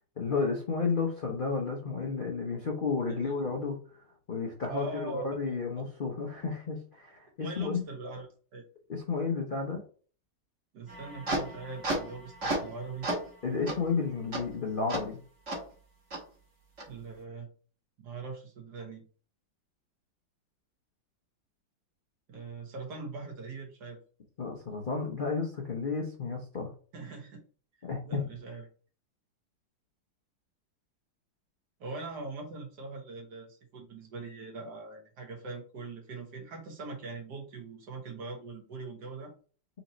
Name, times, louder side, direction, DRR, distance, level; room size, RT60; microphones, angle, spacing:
voice 1, 0.2-3.8 4.3-7.8 8.9-9.8 13.4-15.2 24.4-26.7 27.8-28.2, left 4 dB, 50° left, 0 dB, 0.6 m, -32 dB
voice 2, 4.7-5.5 7.4-8.3 8.5-8.6 10.7-13.1 16.9-17.5 18.0-19.0 22.3-24.0 26.9-27.4 28.0-28.6 31.8-39.3, right 3 dB, 65° right, 2 dB, 1.7 m, -41 dB
sound 1, 10.9-12.7 13.0-13.3 13.7-13.8 14.3-14.4 14.9-15.0 15.5-15.6 16.1-16.2 16.8-16.9, right 1 dB, 45° right, 1.7 m, -33 dB
4.2 x 2.9 x 4.0 m, 0.40 s
omnidirectional pair, 2.0 m